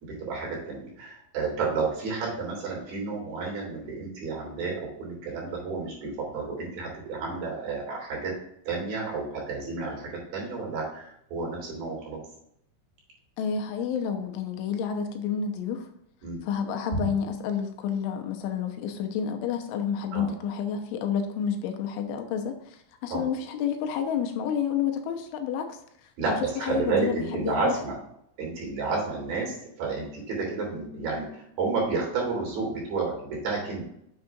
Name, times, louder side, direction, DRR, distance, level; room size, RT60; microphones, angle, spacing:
voice 1, 0.0-8.3 8.7-12.2 16.2-16.4 20.1-20.3 23.1-23.2 26.2-28.0 28.4-29.5 29.8-33.8, right 4 dB, 50° right, -2 dB, 4.6 m, -31 dB
voice 2, 13.4-15.9 16.4-27.7, left 7 dB, 85° left, 5 dB, 3.2 m, -30 dB
8.8 x 7.5 x 2.4 m, 0.74 s
omnidirectional pair, 5.6 m